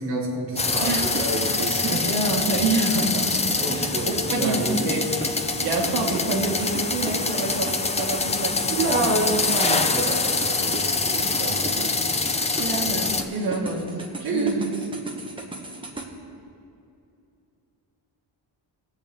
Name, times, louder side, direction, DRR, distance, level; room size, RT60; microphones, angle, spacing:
voice 1, 0.0-2.1 3.6-4.8 8.7-12.0 14.3-14.7, right 2 dB, 30° right, -4 dB, 1.5 m, -28 dB
sound 1, 0.6-13.2, left 3 dB, 15° left, 0.4 m, -25 dB
voice 2, 0.8-1.1 1.5-3.3 3.7-9.1 12.6-13.9 14.2-14.5, right 2 dB, 55° right, -1 dB, 1.9 m, -27 dB
sound 2, 1.1-16.1, right 2 dB, 10° right, 1.0 m, -37 dB
20.0 x 8.1 x 3.5 m, 2.6 s
wide cardioid pair, 170°, 45 cm